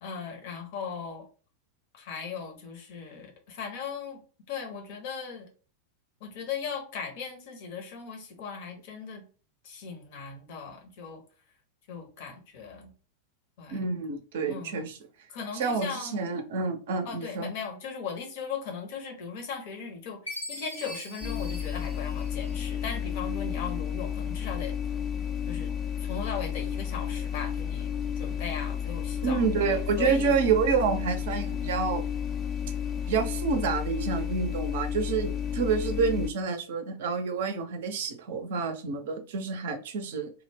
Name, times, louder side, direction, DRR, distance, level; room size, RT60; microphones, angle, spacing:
voice 1, 0.0-1.3 1.9-4.2 4.5-5.5 6.2-9.2 9.6-11.2 11.9-12.9 13.6-13.8 14.4-14.8 15.3-16.3 17.0-24.7 25.5-25.7 26.0-27.9 28.2-29.4 29.7-30.4, left 6 dB, 50° left, 2 dB, 0.7 m, -38 dB
voice 2, 13.7-15.0 15.5-17.5 29.2-32.0 33.1-40.3, right 5 dB, 55° right, 6 dB, 0.5 m, -28 dB
Chime, 20.3-22.8, left 1 dB, 85° left, 1.1 m, -41 dB
sound 1, 21.2-36.3, left 8 dB, 25° left, 0.4 m, -32 dB
2.2 x 2.0 x 3.3 m, 0.38 s
figure-of-eight pair, 90°, 0 cm